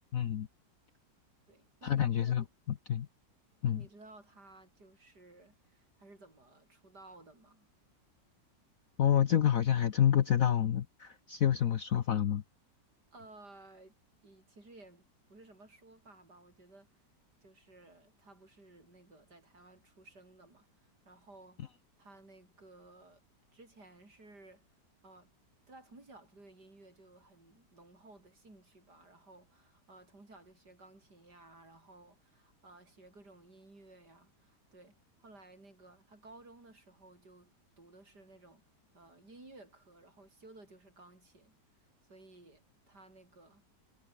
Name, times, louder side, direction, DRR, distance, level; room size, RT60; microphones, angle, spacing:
voice 1, 0.1-0.5 1.8-3.1 3.6-3.8 9.0-12.4, left 9 dB, 55° left, 1.2 m, -28 dB
voice 2, 1.5-2.5 3.6-7.7 13.1-14.0 14.2-17.0 17.4-21.6 22.0-23.2 23.5-24.7 25.0-25.3 25.7-38.6 38.9-43.7, right 2 dB, 65° right, 7.9 m, -57 dB
omnidirectional pair, 1.9 m